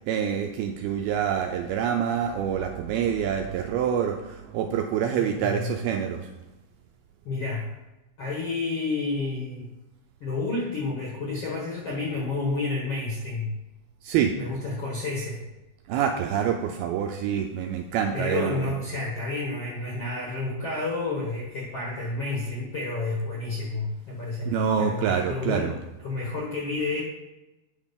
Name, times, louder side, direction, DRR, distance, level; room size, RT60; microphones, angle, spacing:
voice 1, 0.0-6.2 14.0-14.3 15.9-18.6 24.5-25.7, right 8 dB, 80° right, 4 dB, 2.2 m, -26 dB
voice 2, 5.1-5.8 7.2-7.7 8.2-9.7 10.2-13.5 14.0-15.4 18.1-27.0, left 3 dB, 65° left, -3 dB, 1.4 m, -30 dB
9.1 x 5.1 x 5.2 m, 1.0 s
omnidirectional pair, 4.8 m